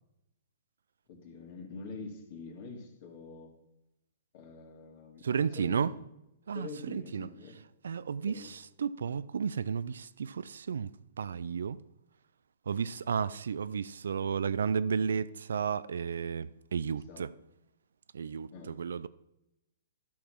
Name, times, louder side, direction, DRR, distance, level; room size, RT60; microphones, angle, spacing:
voice 1, 1.1-3.5 4.3-6.0 6.5-7.6 8.2-8.5 17.1-17.3 18.5-18.8, left 4 dB, 50° left, 2.3 m, -45 dB
voice 2, 5.2-5.9 6.5-7.3 7.8-10.9 11.2-11.8 12.7-17.3 18.1-19.1, right 6 dB, 75° right, 0.4 m, -33 dB
12.0 x 6.4 x 4.4 m
hypercardioid pair, 130°, 0 cm